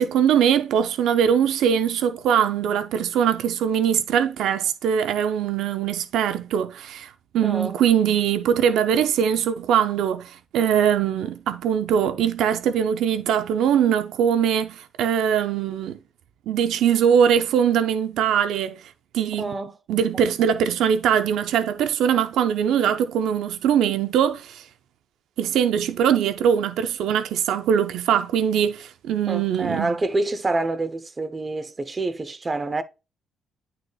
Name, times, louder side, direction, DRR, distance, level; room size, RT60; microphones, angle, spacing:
voice 1, 0.0-16.0 16.5-18.8 19.1-19.5 19.9-24.6 25.4-29.9, right 8 dB, 80° right, 0.5 m, -22 dB
voice 2, 7.4-7.8 19.4-19.8 29.3-32.8, right 2 dB, 25° right, 0.8 m, -27 dB
10.5 x 4.1 x 2.4 m
cardioid pair, 90°, 0 cm